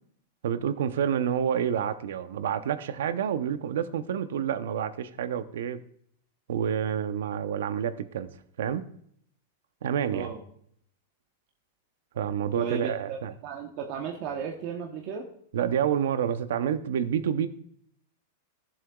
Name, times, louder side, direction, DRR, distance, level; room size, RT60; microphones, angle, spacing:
voice 1, 0.4-5.8 6.5-8.3 8.6-8.8 9.8-10.3 12.1-13.3 15.5-17.5, right 8 dB, 75° right, 12 dB, 0.7 m, -28 dB
voice 2, 12.6-13.2 13.4-15.3, right 6 dB, 40° right, 1 dB, 1.0 m, -35 dB
15.5 x 7.4 x 2.3 m, 0.66 s
supercardioid pair, 170°, 0 cm